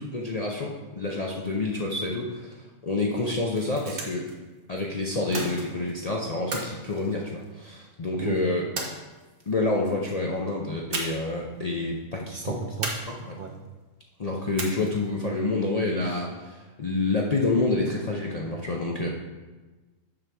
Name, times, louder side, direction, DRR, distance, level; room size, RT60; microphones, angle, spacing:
voice 1, 0.0-4.3 4.7-8.6 9.5-12.6 13.1-13.4 14.2-19.1, left 2 dB, 55° left, -2 dB, 0.4 m, -28 dB
sound 1, 3.4-4.3 5.3-6.0 6.5-7.8 8.8-9.5 10.9-11.4 11.6-11.8 12.8-13.6 14.6-15.1, right 2 dB, 45° right, 1.1 m, -35 dB
voice 2, 12.4-13.0 13.4-13.5, right 7 dB, 80° right, 2 dB, 0.4 m, -33 dB
7.4 x 3.4 x 6.1 m, 1.2 s
omnidirectional pair, 1.5 m